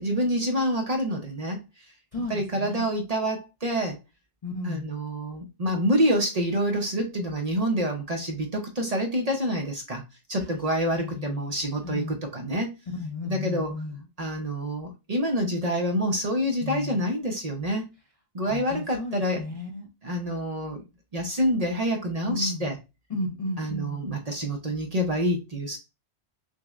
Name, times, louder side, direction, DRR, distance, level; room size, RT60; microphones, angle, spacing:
voice 1, 0.0-1.6 2.3-4.0 4.6-10.0 10.3-12.7 13.3-13.7 14.2-17.9 18.3-19.4 20.0-20.8 21.1-22.8 23.6-25.8, equal, 45° right, 0.7 m, -27 dB
voice 2, 2.1-2.9 4.4-4.9 10.4-11.5 11.8-12.2 12.9-14.1 16.6-17.0 18.4-19.9 22.2-22.7 23.1-24.1, left 2 dB, 45° left, 0.5 m, -34 dB
6.1 x 2.1 x 2.4 m
omnidirectional pair, 1.1 m